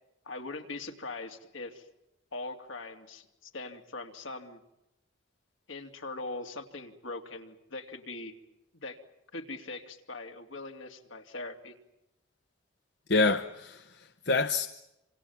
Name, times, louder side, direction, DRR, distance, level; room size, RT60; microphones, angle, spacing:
voice 1, 0.2-1.9 2.3-4.6 5.7-8.3 8.7-9.0 9.3-11.7, left 2 dB, 75° left, 3.0 m, -41 dB
voice 2, 13.1-14.7, left 3 dB, 55° left, 1.0 m, -27 dB
27.5 x 27.0 x 7.3 m
head